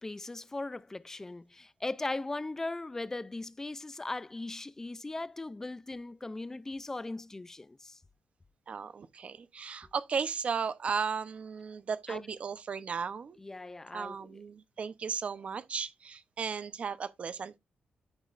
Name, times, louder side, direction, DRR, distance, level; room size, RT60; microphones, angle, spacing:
voice 1, 0.0-8.0 12.1-12.2 13.4-14.4, left 2 dB, 15° left, 0.4 m, -39 dB
voice 2, 8.7-13.4 13.9-17.6, right 6 dB, 40° right, 0.8 m, -35 dB
12.5 x 5.4 x 2.5 m
wide cardioid pair, 150°, 3 cm